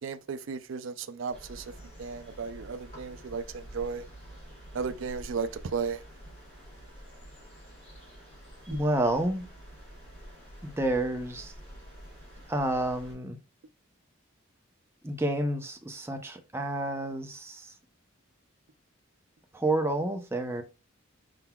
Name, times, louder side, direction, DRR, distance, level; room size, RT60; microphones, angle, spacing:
voice 1, 0.0-1.7 2.0-4.1 4.7-6.0 8.7-8.8, right 5 dB, 60° right, 0.4 m, -35 dB
sound 1, 1.3-13.1, equal, 30° left, 2.6 m, -48 dB
voice 2, 8.7-9.4 10.6-11.5 12.5-13.4 15.0-17.7 19.5-20.6, right 1 dB, 10° right, 0.6 m, -29 dB
5.6 x 3.8 x 2.3 m
head